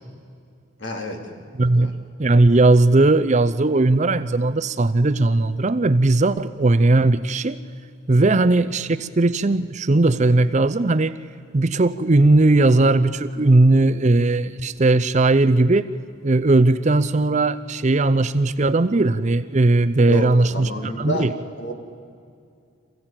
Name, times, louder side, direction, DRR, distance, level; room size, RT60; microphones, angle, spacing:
voice 1, 0.8-1.2 1.6-1.9 8.1-8.4 20.1-21.3 21.6-21.7, left 1 dB, 55° left, 3 dB, 2.9 m, -29 dB
voice 2, 1.6-1.9 2.2-7.6 8.1-11.1 11.5-15.9 16.2-21.3, right 2 dB, 35° right, 13 dB, 0.5 m, -18 dB
26.5 x 15.5 x 9.0 m, 2.3 s
head